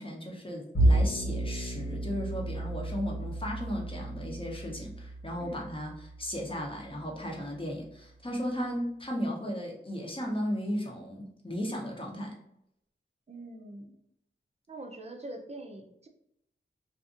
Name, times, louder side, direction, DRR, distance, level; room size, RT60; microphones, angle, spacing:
voice 1, 0.0-12.3, equal, 25° left, -1 dB, 0.8 m, -35 dB
Bowed string instrument, 0.7-7.2, right 1 dB, 65° left, 1.2 m, -31 dB
voice 2, 13.3-13.9 14.7-16.1, right 2 dB, 30° right, 3 dB, 0.5 m, -43 dB
2.5 x 2.5 x 2.5 m, 0.78 s
wide cardioid pair, 60°, 21 cm